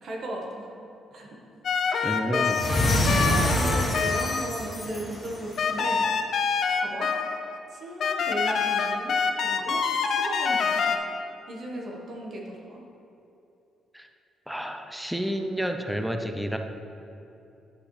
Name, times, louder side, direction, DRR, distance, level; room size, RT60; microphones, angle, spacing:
voice 1, 0.0-0.7 1.1-1.3 2.3-6.1 6.8-7.1 7.7-9.8 10.0-11.0 11.5-12.8, right 1 dB, 60° right, -1 dB, 1.4 m, -36 dB
sound 1, 1.6-4.6 5.6-7.6 8.0-11.0, left 5 dB, 60° left, 0.5 m, -26 dB
voice 2, 2.0-2.9 13.9-14.1 14.5-16.6, equal, 5° right, 5 dB, 0.5 m, -30 dB
sound 2, 2.4-5.8, left 1 dB, 30° left, 1.8 m, -26 dB
10.0 x 5.7 x 3.3 m, 2.8 s
cardioid pair, 90°, 0 cm